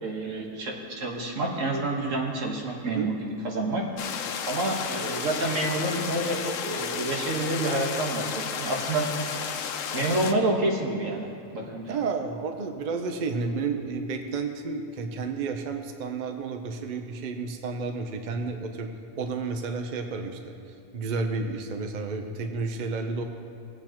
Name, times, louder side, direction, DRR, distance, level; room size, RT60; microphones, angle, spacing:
voice 1, 0.0-4.1 4.4-9.5 9.9-12.0, right 2 dB, 75° right, 0 dB, 1.7 m, -28 dB
sound 1, 4.0-10.3, left 7 dB, 85° left, 1.0 m, -33 dB
voice 2, 11.9-18.9 19.2-20.5 20.9-23.2, right 4 dB, 45° right, 5 dB, 0.7 m, -31 dB
18.5 x 7.9 x 2.9 m, 2.9 s
omnidirectional pair, 1.3 m